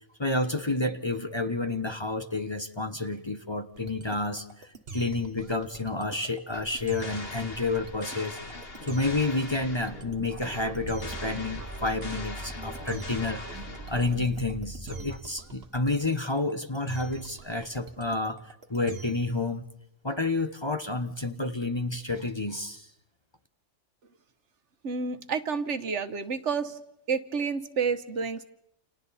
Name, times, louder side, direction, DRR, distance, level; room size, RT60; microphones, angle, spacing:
voice 1, 0.2-8.4 8.8-19.7 20.0-22.9, left 2 dB, 25° left, 8 dB, 1.0 m, -30 dB
sound 1, 3.8-19.4, right 4 dB, 55° right, 1.7 m, -44 dB
sound 2, 6.5-14.4, left 2 dB, 50° left, 2.3 m, -42 dB
sound 3, 10.1-15.2, right 2 dB, 10° right, 1.9 m, -41 dB
voice 2, 24.8-26.8 27.1-28.4, right 5 dB, 70° right, 10 dB, 1.5 m, -29 dB
30.0 x 29.0 x 4.2 m, 0.81 s
omnidirectional pair, 1.3 m